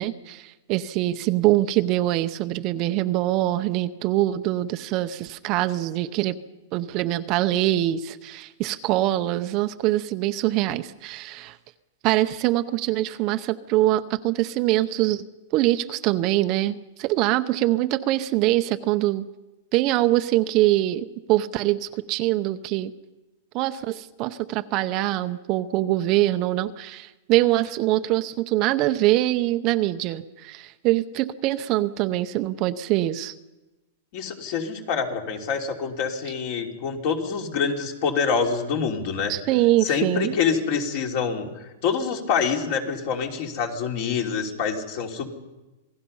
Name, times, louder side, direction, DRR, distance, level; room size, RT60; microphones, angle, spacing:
voice 1, 0.0-6.4 6.7-11.6 12.0-15.2 15.5-19.3 19.7-22.9 23.5-33.3 39.3-40.3, right 15 dB, 35° right, 10 dB, 0.7 m, -23 dB
voice 2, 34.1-39.3 39.8-45.3, left 6 dB, 50° left, 2 dB, 3.1 m, -26 dB
27.5 x 19.0 x 5.5 m, 1.1 s
supercardioid pair, 155°, 0 cm